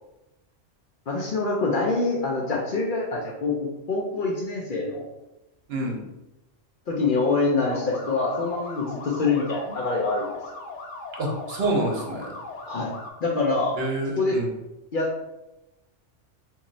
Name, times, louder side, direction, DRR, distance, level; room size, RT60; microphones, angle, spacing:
voice 1, 1.1-5.0 6.9-10.3 12.7-12.9 13.2-13.8 14.2-14.4 14.9-15.2, left 3 dB, 55° left, -1 dB, 0.6 m, -25 dB
voice 2, 5.7-6.1 11.2-12.3 13.7-14.5, right 2 dB, 60° right, -1 dB, 1.0 m, -27 dB
sound 1, 7.7-13.1, left 3 dB, 80° left, 1.0 m, -39 dB
3.0 x 2.7 x 3.8 m, 0.95 s
omnidirectional pair, 1.2 m